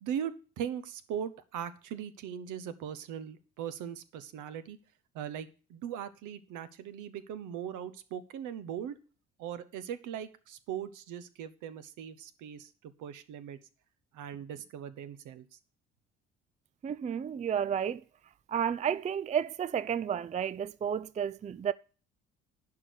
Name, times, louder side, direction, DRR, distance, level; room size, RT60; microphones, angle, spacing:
voice 1, 0.0-4.8 5.1-8.9 9.4-13.6 14.1-15.5, right 9 dB, 65° right, 1.1 m, -39 dB
voice 2, 16.8-18.0 18.5-21.7, right 8 dB, 20° right, 0.4 m, -31 dB
11.0 x 4.8 x 8.3 m
hypercardioid pair, 60°, 33 cm